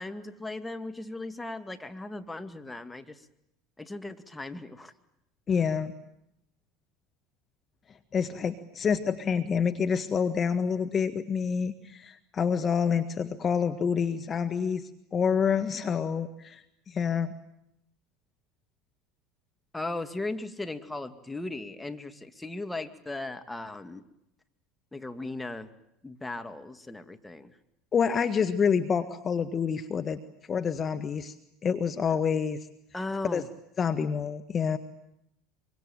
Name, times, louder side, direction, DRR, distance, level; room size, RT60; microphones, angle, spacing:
voice 1, 0.0-3.2 3.8-4.9 19.7-24.0 24.9-25.7 26.0-27.6 32.9-33.5, left 2 dB, 10° left, 7 dB, 2.2 m, -37 dB
voice 2, 5.5-5.9 8.1-17.3 27.9-30.2 30.5-31.3 31.6-32.7 33.3-33.4 33.8-34.8, left 6 dB, 35° left, 9 dB, 1.4 m, -27 dB
25.0 x 24.5 x 9.0 m, 0.80 s
hypercardioid pair, 75°, 0 cm